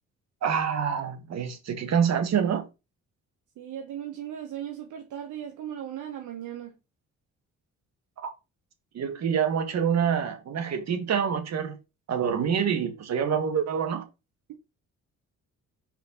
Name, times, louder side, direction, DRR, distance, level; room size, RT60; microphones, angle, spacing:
voice 1, 0.4-2.7 8.2-8.3 8.9-11.8 12.1-14.1, right 7 dB, 60° right, 1.6 m, -26 dB
voice 2, 3.6-6.7, right 10 dB, 75° right, 1.2 m, -37 dB
5.2 x 4.4 x 5.5 m
cardioid pair, 90°, 30 cm